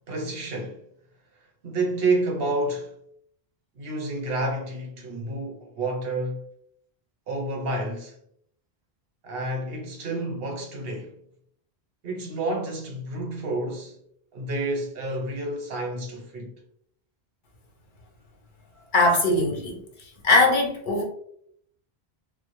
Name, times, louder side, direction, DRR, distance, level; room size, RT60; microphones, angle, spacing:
voice 1, 0.1-0.8 1.6-2.9 3.8-6.4 7.3-8.2 9.2-11.1 12.0-14.0 14.3-16.6, right 2 dB, 70° right, 0.8 m, -29 dB
voice 2, 18.9-19.8 20.2-21.0, left 2 dB, 60° left, 0.7 m, -20 dB
2.2 x 2.0 x 2.8 m
omnidirectional pair, 1.1 m